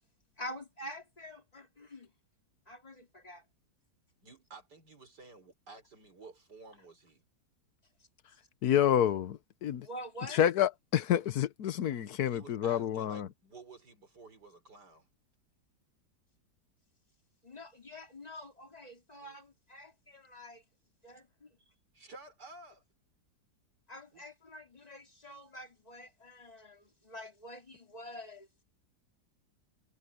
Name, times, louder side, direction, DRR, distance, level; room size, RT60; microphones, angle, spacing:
voice 1, 0.4-2.1 2.7-3.4 9.8-10.4 17.4-20.6 21.0-21.2 23.9-28.6, left 1 dB, 20° left, 2.8 m, -47 dB
voice 2, 4.2-7.2 12.0-15.1 21.9-22.8 24.1-24.3, right 3 dB, 70° right, 5.3 m, -53 dB
voice 3, 8.6-9.9 10.3-13.3, left 10 dB, 65° left, 1.4 m, -28 dB
omnidirectional pair, 1.8 m